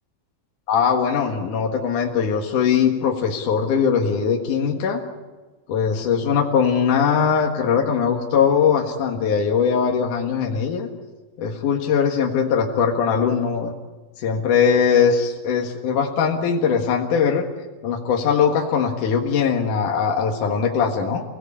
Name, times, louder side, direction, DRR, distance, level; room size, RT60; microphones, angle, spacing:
voice 1, 0.7-5.0 5.7-10.9 11.4-13.7 14.2-17.5 17.8-21.2, left 6 dB, 75° left, 1 dB, 3.2 m, -20 dB
29.5 x 18.5 x 8.6 m, 1.3 s
omnidirectional pair, 3.6 m